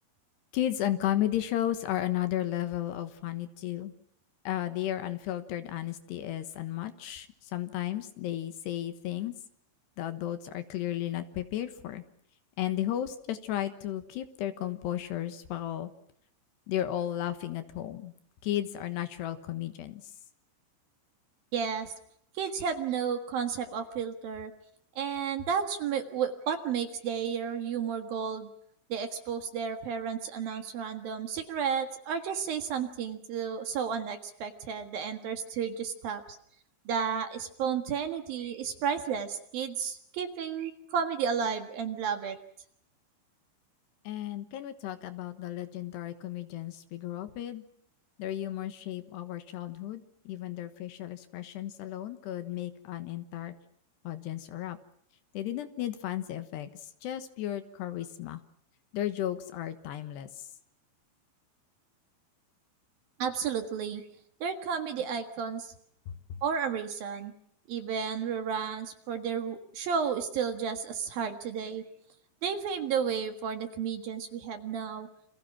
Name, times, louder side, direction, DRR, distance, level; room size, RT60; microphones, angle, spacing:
voice 1, 0.5-3.9 4.4-9.3 10.0-12.0 12.6-15.9 16.7-18.1 18.4-20.1 44.0-47.6 48.2-53.5 54.0-54.8 55.3-58.4 58.9-60.5 66.1-66.4, left 12 dB, 70° left, 10 dB, 3.1 m, -34 dB
voice 2, 21.5-21.9 22.3-24.5 25.0-28.5 28.9-36.4 36.9-42.4 63.2-64.0 64.4-65.7 66.4-67.3 67.7-71.8 72.4-75.1, right 7 dB, 60° right, 7 dB, 3.0 m, -32 dB
29.0 x 27.0 x 6.0 m, 0.68 s
omnidirectional pair, 5.4 m